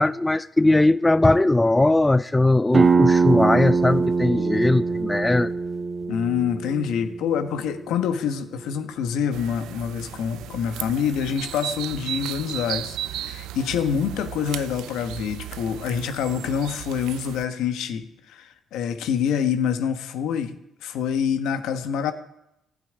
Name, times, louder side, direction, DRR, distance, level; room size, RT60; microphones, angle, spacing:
voice 1, 0.0-5.5, left 2 dB, 15° left, 0.4 m, -19 dB
sound 1, 2.7-8.1, right 4 dB, 30° right, 1.6 m, -23 dB
voice 2, 6.1-20.5 20.8-22.1, left 7 dB, 90° left, 1.3 m, -26 dB
sound 2, 9.3-17.4, right 13 dB, 90° right, 0.5 m, -35 dB
12.5 x 8.9 x 9.9 m
cardioid pair, 90°, 0 cm